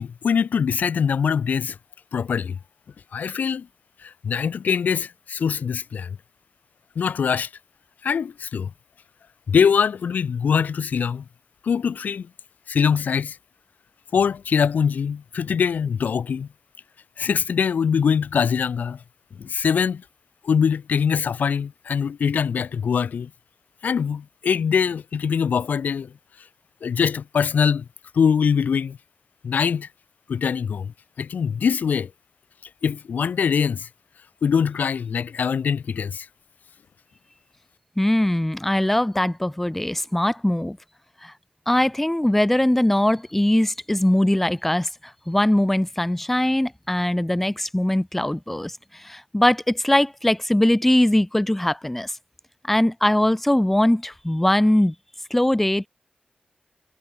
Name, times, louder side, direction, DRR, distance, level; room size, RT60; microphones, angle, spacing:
voice 1, 0.0-1.8 2.1-2.6 3.1-3.7 4.0-6.2 7.0-7.5 8.0-8.7 9.5-11.2 11.6-12.3 12.7-13.4 14.1-16.5 17.2-19.0 19.4-20.0 20.4-23.3 23.8-26.1 26.8-27.9 28.1-29.0 29.4-29.9 30.3-32.1 32.8-33.9 34.4-36.3, left 6 dB, 60° left, 0.5 m, -23 dB
voice 2, 38.0-40.8 41.2-41.3 41.7-52.1 52.6-54.9 55.3-55.9, left 1 dB, 5° left, 0.9 m, -21 dB
wide cardioid pair, 165°, 3 cm